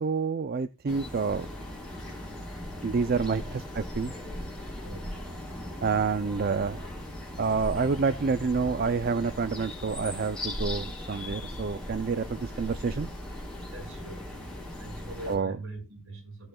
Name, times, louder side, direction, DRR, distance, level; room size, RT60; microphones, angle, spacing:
voice 1, 0.0-1.5 2.8-3.4 3.7-4.1 5.8-6.9 7.4-13.1 15.3-15.5, right 5 dB, 45° right, 0.4 m, -28 dB
sound 1, 0.9-15.4, left 1 dB, 5° left, 4.8 m, -38 dB
voice 2, 4.8-5.7 13.7-14.3 14.8-16.5, right 1 dB, 75° right, 5.8 m, -43 dB
17.0 x 7.6 x 2.3 m
head